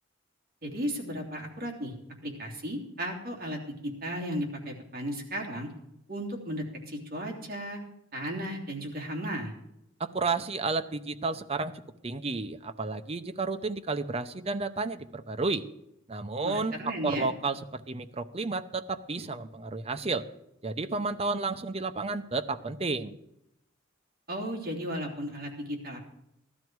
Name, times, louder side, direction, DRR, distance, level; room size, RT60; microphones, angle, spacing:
voice 1, 0.6-1.9 2.2-5.7 6.1-7.8 8.1-9.5 16.4-17.3 24.3-26.0, equal, 45° right, 1 dB, 3.0 m, -35 dB
voice 2, 10.0-15.6 16.1-20.2 20.6-23.1, right 3 dB, 30° right, 8 dB, 0.7 m, -32 dB
15.5 x 12.5 x 4.7 m, 0.81 s
head